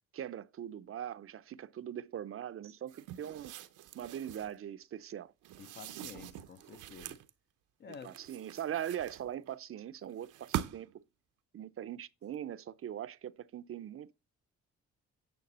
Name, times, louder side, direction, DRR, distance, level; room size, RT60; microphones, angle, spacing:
voice 1, 0.1-3.5 3.9-5.3 8.0-11.0 11.5-14.1, right 10 dB, 45° right, 0.5 m, -41 dB
sound 1, 2.9-4.6 5.4-7.3 7.9-9.5 10.2-11.0, right 12 dB, 85° right, 0.8 m, -43 dB
voice 2, 5.6-7.2 7.8-8.2, left 7 dB, 35° left, 0.5 m, -50 dB
9.4 x 5.9 x 4.1 m
cardioid pair, 90°, 30 cm